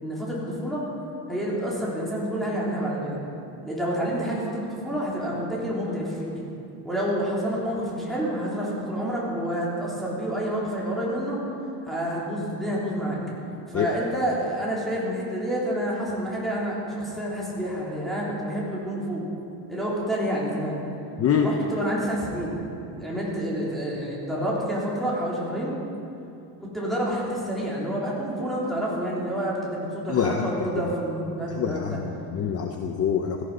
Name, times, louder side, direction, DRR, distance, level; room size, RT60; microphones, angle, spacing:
voice 1, 0.0-0.8 1.3-3.2 3.6-6.4 6.8-11.4 11.8-13.2 13.7-19.2 19.7-20.8 21.4-22.7 22.9-25.8 26.6-32.0, equal, ahead, -6 dB, 3.3 m, -28 dB
voice 2, 21.2-21.5 30.1-30.8 31.5-33.4, left 7 dB, 35° left, 4 dB, 0.8 m, -26 dB
17.0 x 14.5 x 5.5 m, 2.7 s
cardioid pair, 175°, 40 cm